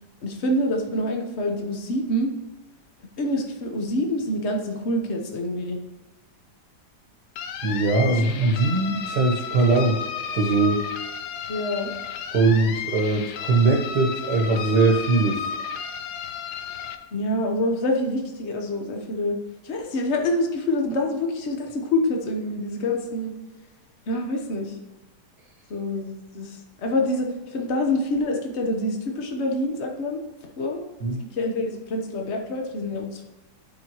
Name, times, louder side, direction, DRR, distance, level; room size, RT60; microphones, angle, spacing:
voice 1, 0.2-2.3 3.2-5.8 8.1-8.5 11.5-11.9 17.1-19.4 19.6-23.3 24.1-24.8 25.7-30.2 30.6-30.8 31.3-33.3, left 1 dB, 45° left, 2 dB, 1.2 m, -26 dB
sound 1, 7.4-17.0, left 7 dB, 80° left, 1.3 m, -33 dB
voice 2, 7.6-10.0 10.3-10.8 12.3-15.4 31.0-31.2, right 3 dB, 75° right, 2 dB, 1.6 m, -21 dB
12.0 x 5.0 x 3.0 m, 1.1 s
omnidirectional pair, 1.8 m